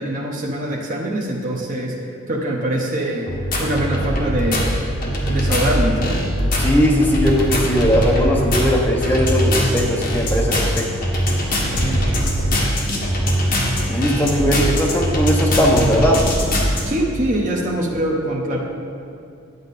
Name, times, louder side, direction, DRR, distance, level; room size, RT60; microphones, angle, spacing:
voice 1, 0.0-4.7 5.3-6.3 11.7-12.5 16.8-18.6, right 1 dB, 40° right, -2 dB, 0.8 m, -24 dB
sound 1, 3.3-16.8, equal, 45° left, 1.5 m, -21 dB
voice 2, 6.6-10.9 13.9-16.3, equal, 10° left, -1 dB, 0.9 m, -19 dB
9.6 x 8.1 x 4.1 m, 2.4 s
head